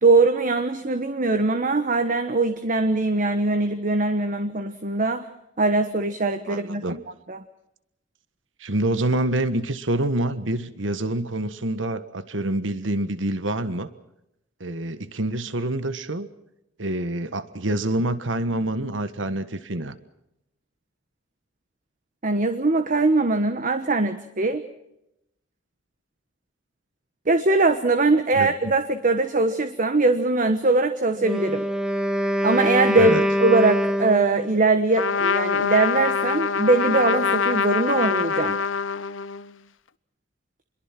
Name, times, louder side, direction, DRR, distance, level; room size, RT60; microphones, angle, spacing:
voice 1, 0.0-5.3 5.6-6.9 7.3-7.4 22.2-24.6 27.3-31.7 32.2-38.6, right 3 dB, 45° right, 9 dB, 1.2 m, -21 dB
voice 2, 6.5-7.0 8.6-13.9 14.6-16.3 16.8-20.0 28.3-28.5 33.0-33.2, right 1 dB, 75° right, 12 dB, 1.5 m, -26 dB
Wind instrument woodwind instrument, 31.1-34.6, equal, 5° right, 1.9 m, -24 dB
Trumpet, 34.9-39.5, left 5 dB, 85° left, 0.9 m, -24 dB
27.0 x 22.5 x 6.0 m, 0.84 s
head